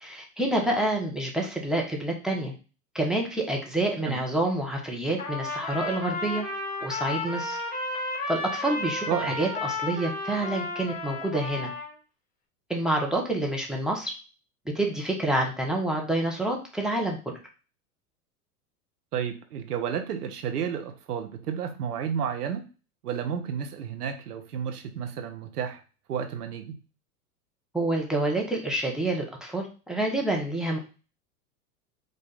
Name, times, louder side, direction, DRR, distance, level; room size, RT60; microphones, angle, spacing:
voice 1, 0.0-2.5 2.9-6.4 6.8-7.6 8.3-11.7 12.7-14.1 14.7-17.3 27.7-30.8, right 1 dB, ahead, 1 dB, 1.1 m, -28 dB
Trumpet, 5.2-11.9, left 2 dB, 20° left, 1.9 m, -33 dB
voice 2, 19.1-22.7 23.0-25.8 26.1-26.8, right 8 dB, 75° right, 6 dB, 1.0 m, -31 dB
5.0 x 2.6 x 4.0 m, 0.34 s
hypercardioid pair, 90°, 46 cm